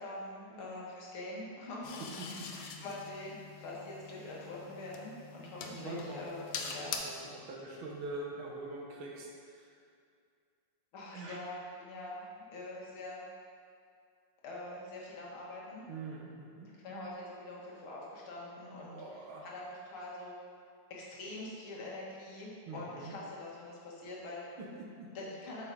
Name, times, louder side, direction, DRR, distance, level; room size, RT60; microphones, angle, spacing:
voice 1, 0.0-7.0 10.9-13.3 14.4-15.8 16.7-20.4 20.9-24.5 25.1-25.7, left 2 dB, 85° left, -4 dB, 2.3 m, -44 dB
sound 1, 1.8-7.0, left 6 dB, 70° left, 1.1 m, -44 dB
voice 2, 2.2-2.5 5.6-6.2 6.6-9.7 11.1-11.4 15.9-16.7 18.8-19.5 22.7-23.1 24.6-25.1, right 2 dB, 85° right, -2 dB, 2.0 m, -44 dB
7.8 x 6.2 x 3.9 m, 2.3 s
omnidirectional pair, 2.2 m